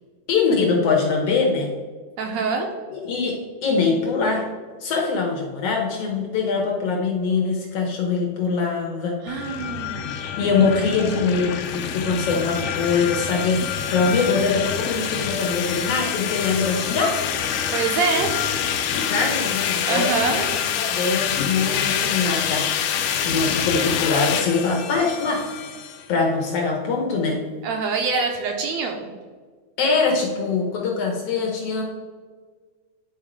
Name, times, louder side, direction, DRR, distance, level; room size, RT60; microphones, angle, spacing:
voice 1, 0.3-1.7 2.9-4.5 4.8-9.2 10.1-17.2 19.1-22.7 23.2-25.6 26.1-27.4 29.8-31.8, left 4 dB, 65° left, 0 dB, 1.7 m, -23 dB
voice 2, 2.2-2.7 9.2-10.1 17.7-18.3 19.9-20.5 27.6-29.1, right 4 dB, 75° right, 3 dB, 1.8 m, -24 dB
sound 1, 9.3-26.0, left 8 dB, 80° left, 1.4 m, -26 dB
9.6 x 3.6 x 4.9 m, 1.5 s
omnidirectional pair, 3.5 m